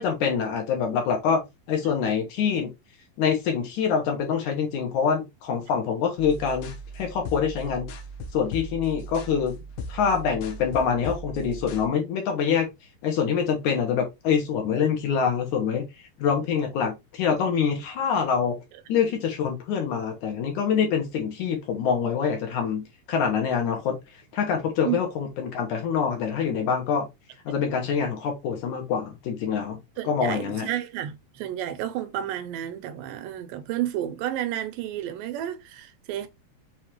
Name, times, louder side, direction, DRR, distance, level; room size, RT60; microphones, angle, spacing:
voice 1, 0.0-1.4 1.7-2.7 3.2-7.9 8.3-9.6 9.9-12.7 13.0-15.9 16.2-18.6 18.9-24.0 24.3-27.1 27.5-29.8 30.0-30.7, left 7 dB, 70° left, 2.4 m, -25 dB
sound 1, 6.2-11.9, right 1 dB, 85° left, 2.6 m, -38 dB
voice 2, 30.0-36.3, right 12 dB, 85° right, 2.3 m, -31 dB
6.3 x 2.8 x 2.9 m
omnidirectional pair, 4.0 m